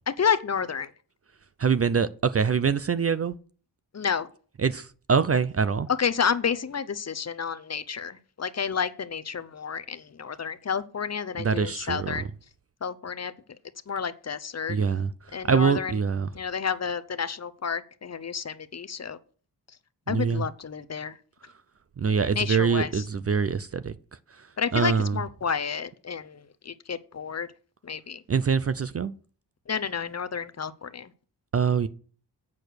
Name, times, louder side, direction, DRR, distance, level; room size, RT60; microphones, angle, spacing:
voice 1, 0.1-0.9 3.9-4.3 6.0-12.3 12.8-13.3 13.9-14.8 15.3-16.0 16.3-19.2 20.1-21.2 22.3-23.1 24.6-27.5 27.8-28.2 29.7-31.1, left 6 dB, 40° left, 0.7 m, -30 dB
voice 2, 1.6-3.3 4.6-5.9 11.4-12.2 14.7-15.1 15.5-16.3 20.1-20.4 22.0-23.9 24.7-25.2 28.3-29.1 31.5-31.9, right 6 dB, 35° right, 0.4 m, -24 dB
8.5 x 6.7 x 6.3 m
wide cardioid pair, 130°, 42 cm